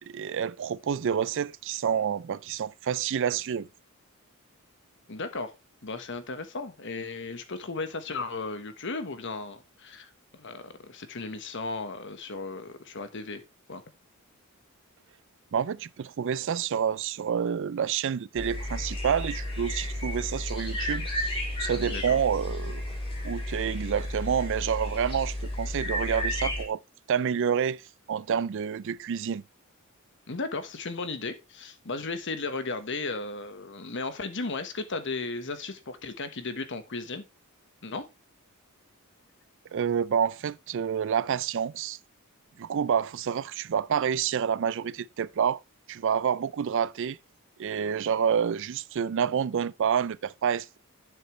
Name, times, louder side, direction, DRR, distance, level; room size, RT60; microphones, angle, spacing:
voice 1, 0.1-3.7 15.5-21.1 21.6-22.8 23.2-26.8 27.1-27.8 28.1-29.4 39.7-42.0 42.6-45.6 45.9-47.2 47.6-50.8, right 7 dB, 60° right, 0.4 m, -28 dB
voice 2, 5.1-5.5 5.8-13.4 13.7-13.8 21.8-22.2 30.3-37.2 37.8-38.1, left 3 dB, 60° left, 1.3 m, -35 dB
sound 1, 18.4-26.6, left 1 dB, 25° left, 4.6 m, -32 dB
9.1 x 7.4 x 3.2 m
head